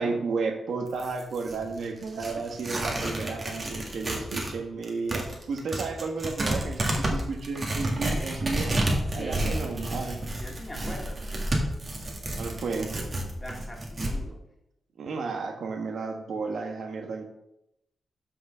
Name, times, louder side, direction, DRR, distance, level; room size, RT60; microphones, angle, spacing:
voice 1, 0.0-8.8 9.1-10.2 12.0-13.0 15.0-17.3, right 4 dB, 70° right, 4 dB, 1.4 m, -33 dB
Tearing, 0.9-4.5 4.8-14.2, right 1 dB, 30° right, 1.7 m, -30 dB
voice 2, 9.1-9.5 10.4-11.2 13.4-14.4, left 1 dB, 15° left, 0 dB, 2.0 m, -41 dB
6.3 x 5.9 x 6.6 m, 0.85 s
wide cardioid pair, 140°, 0 cm